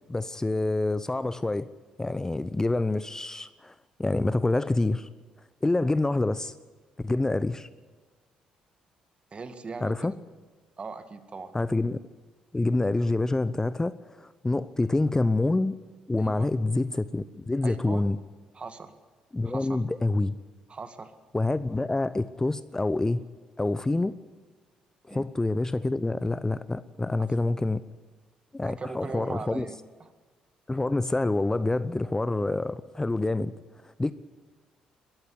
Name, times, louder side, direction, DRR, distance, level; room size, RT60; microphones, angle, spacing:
voice 1, 0.1-1.7 2.0-3.7 4.0-5.1 5.6-6.5 7.0-7.7 9.8-10.2 11.5-12.0 12.5-15.7 16.1-18.2 19.3-20.4 21.3-23.2 23.6-24.1 25.1-27.8 28.5-29.7 30.7-33.5 33.8-34.1, left 2 dB, 15° left, 15 dB, 0.7 m, -27 dB
voice 2, 9.3-10.2 10.8-11.5 16.2-16.5 17.6-18.0 18.5-19.0 19.4-19.8 20.7-21.2 25.1-25.3 28.6-30.1, right 4 dB, 35° right, 9 dB, 2.1 m, -39 dB
21.5 x 14.0 x 9.8 m, 1.4 s
hypercardioid pair, 45°, 3 cm